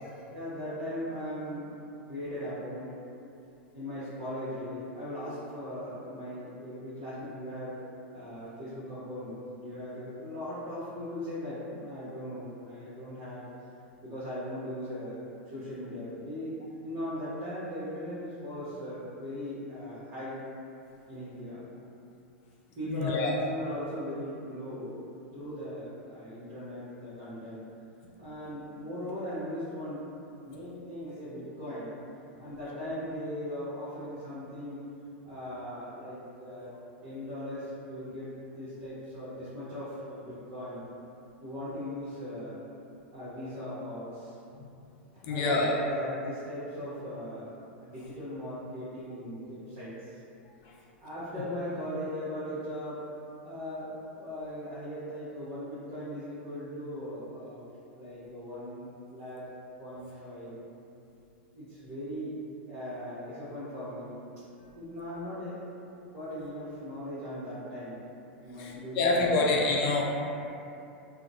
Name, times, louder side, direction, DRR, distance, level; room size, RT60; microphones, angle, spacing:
voice 1, 0.3-1.7 2.1-2.9 3.7-7.8 8.1-13.4 14.0-15.2 15.5-16.6 16.8-20.4 21.1-21.7 22.7-25.0 25.3-27.6 28.2-30.0 30.4-31.9 32.4-34.8 35.2-36.7 37.0-40.9 41.4-42.6 43.1-44.4 45.1-47.5 47.8-50.2 51.0-53.0 53.4-57.6 57.9-59.5 59.8-60.6 61.5-62.4 62.7-64.2 64.7-65.8 66.1-68.0 68.4-69.4, equal, 40° right, -14 dB, 0.9 m, -39 dB
voice 2, 22.9-23.3 45.2-45.8 68.6-70.0, left 3 dB, 50° left, -2 dB, 0.3 m, -27 dB
2.4 x 2.1 x 2.6 m, 2.7 s
hypercardioid pair, 100°, 6 cm